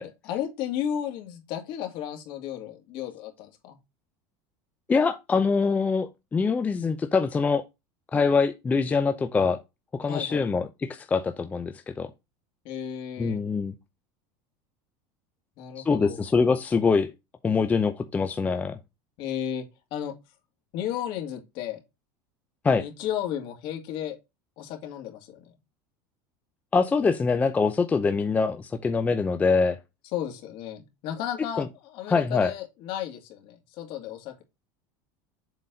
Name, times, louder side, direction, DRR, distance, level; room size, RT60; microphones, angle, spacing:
voice 1, 0.0-3.8 10.1-10.4 12.6-13.4 15.6-16.2 19.2-19.6 19.9-20.1 20.7-21.8 22.8-24.2 24.6-25.4 30.1-34.4, left 10 dB, 55° left, 2.4 m, -33 dB
voice 2, 4.9-7.6 8.1-9.6 10.0-12.1 13.2-13.7 15.8-17.1 17.4-18.8 22.6-22.9 26.7-29.8 31.6-31.7 32.1-32.5, left 4 dB, 15° left, 0.5 m, -24 dB
7.5 x 4.0 x 3.9 m
supercardioid pair, 145°, 10 cm